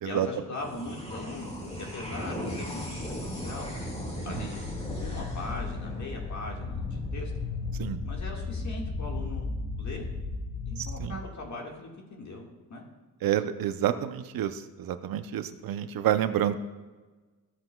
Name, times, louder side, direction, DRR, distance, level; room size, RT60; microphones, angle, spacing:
voice 1, 0.0-3.7 4.2-4.7 5.0-7.3 8.0-9.5 9.8-10.1 10.7-12.8, left 2 dB, 55° left, 0 dB, 1.8 m, -40 dB
sound 1, 0.5-7.3, equal, 15° left, 2.0 m, -38 dB
sound 2, 2.9-11.1, left 3 dB, 80° left, 1.9 m, -35 dB
voice 2, 10.8-11.2 13.2-16.5, right 11 dB, 75° right, 11 dB, 0.6 m, -29 dB
13.0 x 7.7 x 2.3 m, 1.3 s
cardioid pair, 110°, 35 cm